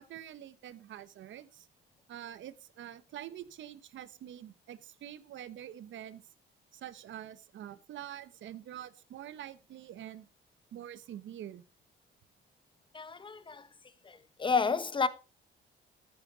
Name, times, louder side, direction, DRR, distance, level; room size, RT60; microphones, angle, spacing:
voice 1, 0.0-1.7 2.1-6.2 6.7-10.3 10.7-11.6, right 11 dB, 75° right, 1.0 m, -46 dB
voice 2, 12.9-13.7 14.0-15.1, left 5 dB, 25° left, 1.1 m, -31 dB
13.5 x 9.2 x 3.9 m
cardioid pair, 90°, 20 cm